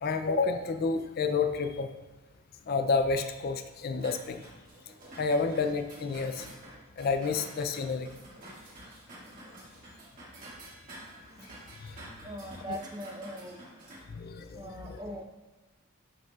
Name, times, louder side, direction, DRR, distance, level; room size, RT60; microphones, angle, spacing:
voice 1, 0.0-1.9 2.7-4.4 5.2-6.5 7.0-8.1 11.8-12.0 12.7-12.8 14.1-15.0, left 4 dB, 45° left, 8 dB, 0.3 m, -30 dB
sound 1, 4.0-14.0, right 1 dB, 40° right, 1.9 m, -49 dB
voice 2, 12.2-15.2, equal, 20° right, 3 dB, 0.6 m, -42 dB
11.0 x 5.2 x 2.4 m, 1.2 s
head